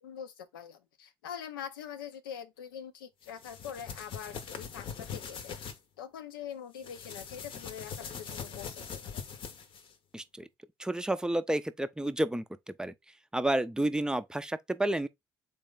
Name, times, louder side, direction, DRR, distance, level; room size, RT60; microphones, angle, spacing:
voice 1, 0.0-5.6 6.0-9.2, left 8 dB, 75° left, 0.6 m, -44 dB
sound 1, 3.3-5.8 6.8-9.9, left 6 dB, 50° left, 0.8 m, -42 dB
voice 2, 10.1-10.5 10.8-12.4 12.8-12.9 13.3-15.1, right 1 dB, 5° right, 0.5 m, -30 dB
4.0 x 3.0 x 3.7 m
figure-of-eight pair, 50°, 12 cm